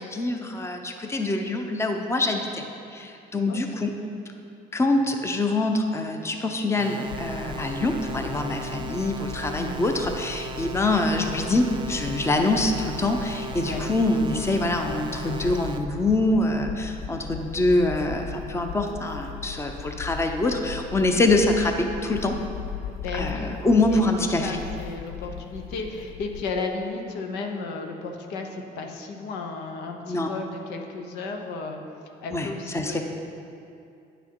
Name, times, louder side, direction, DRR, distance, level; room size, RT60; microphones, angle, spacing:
voice 1, 0.0-2.6 2.9-3.9 4.7-22.4 23.1-24.6 30.1-30.3 32.3-32.5 32.7-33.0, left 2 dB, 15° left, 4 dB, 0.7 m, -25 dB
sound 1, 6.8-15.8, right 3 dB, 30° right, 0.4 m, -37 dB
sound 2, 7.1-26.4, left 7 dB, 70° left, 0.5 m, -38 dB
voice 2, 9.6-10.0 13.6-13.8 23.0-23.5 23.9-24.0 24.4-31.8 32.2-33.0, left 3 dB, 90° left, 3 dB, 0.9 m, -34 dB
9.6 x 6.1 x 4.6 m, 2.6 s
cardioid pair, 110°, 17 cm